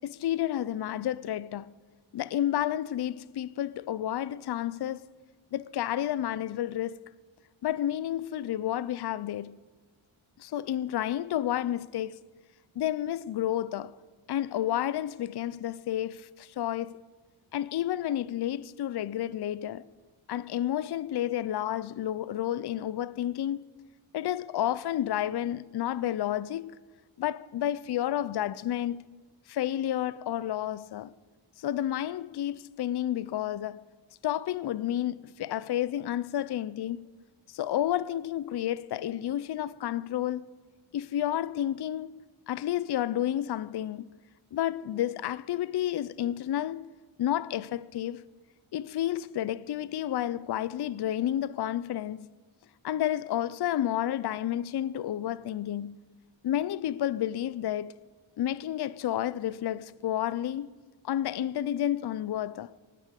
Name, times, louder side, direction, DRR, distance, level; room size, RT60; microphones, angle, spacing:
voice 1, 0.0-1.7 2.1-5.1 5.5-7.0 7.6-9.6 10.4-12.2 12.8-13.9 14.3-17.0 17.5-19.8 20.3-23.7 24.1-26.7 27.2-29.1 29.5-31.1 31.6-33.8 34.2-37.1 37.5-40.5 40.9-44.0 44.5-46.9 47.2-48.2 48.7-52.3 52.8-56.0 56.4-57.9 58.4-60.7 61.0-62.7, left 12 dB, 55° left, 0.5 m, -31 dB
18.5 x 7.6 x 8.2 m
wide cardioid pair, 90°, 50 cm